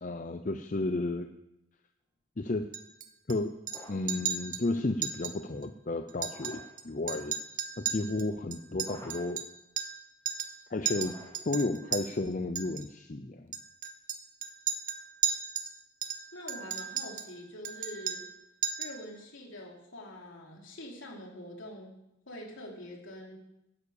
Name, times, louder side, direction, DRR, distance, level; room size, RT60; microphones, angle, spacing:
voice 1, 0.0-1.3 2.4-2.7 3.3-3.5 3.9-7.4 7.8-9.4 10.7-11.1 11.5-13.5, left 2 dB, 35° left, 7 dB, 0.5 m, -32 dB
Chink clink, 2.7-3.3 3.7-3.8 4.1-4.6 5.0-5.3 5.6-5.7 6.1-6.8 7.1-10.0 10.3-10.6 10.9-12.0 12.6-12.8 13.5-15.7 16.0-17.3 17.6-18.4 18.6-19.0, right 8 dB, 40° right, 0.9 m, -35 dB
sound 1, 3.7-4.2 6.2-6.9 8.8-9.4 10.9-11.6, left 1 dB, 15° left, 2.3 m, -51 dB
voice 2, 16.3-18.3 18.8-22.0 22.3-23.4, left 1 dB, 65° left, -1 dB, 3.5 m, -45 dB
11.5 x 11.0 x 7.1 m, 0.88 s
head